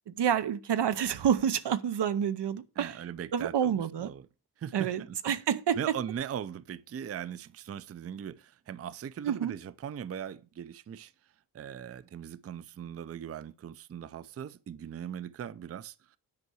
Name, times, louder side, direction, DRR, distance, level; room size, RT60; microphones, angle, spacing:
voice 1, 0.1-3.0 3.3-4.1 4.7-6.0 9.2-9.5, right 8 dB, 85° right, 0.9 m, -28 dB
voice 2, 2.8-4.2 4.6-5.2 5.8-11.1 11.5-15.9, right 9 dB, 40° right, 0.4 m, -39 dB
9.6 x 5.6 x 6.2 m
wide cardioid pair, 175°, 41 cm